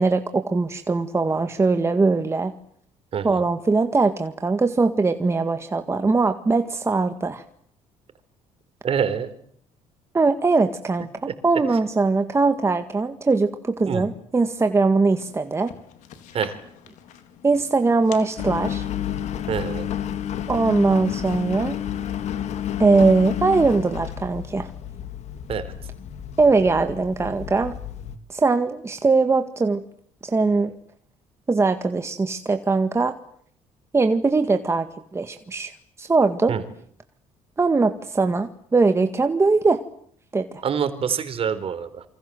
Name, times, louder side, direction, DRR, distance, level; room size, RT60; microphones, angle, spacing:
voice 1, 0.0-2.5 3.2-7.4 10.1-15.7 17.4-18.9 20.5-21.8 22.8-24.7 26.4-27.7 28.3-29.8 30.2-30.7 31.5-33.1 33.9-34.9 35.1-35.7 36.0-36.5 37.6-39.8 40.3-40.6, right 3 dB, 20° right, 7 dB, 1.9 m, -21 dB
voice 2, 3.1-3.4 8.8-9.3 13.9-14.0 16.3-16.6 19.5-19.9 25.5-25.7 36.5-36.6 40.6-42.0, right 7 dB, 50° right, 11 dB, 4.3 m, -26 dB
sound 1, 15.1-22.3, left 8 dB, 80° left, 4.2 m, -47 dB
Engine, 18.4-28.2, left 10 dB, 65° left, 2.4 m, -31 dB
28.0 x 26.0 x 7.9 m, 0.64 s
cardioid pair, 110°, 12 cm